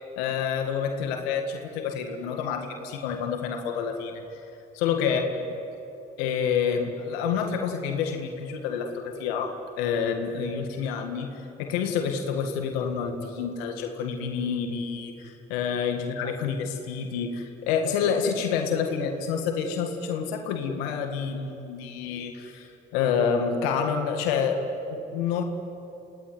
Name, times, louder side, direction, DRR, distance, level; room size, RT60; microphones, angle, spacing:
voice 1, 0.2-4.4 4.7-5.3 6.2-11.3 11.6-24.6 24.9-25.4, left 6 dB, 90° left, 5 dB, 1.9 m, -28 dB
29.0 x 17.5 x 9.5 m, 2.8 s
hypercardioid pair, 40°, 30 cm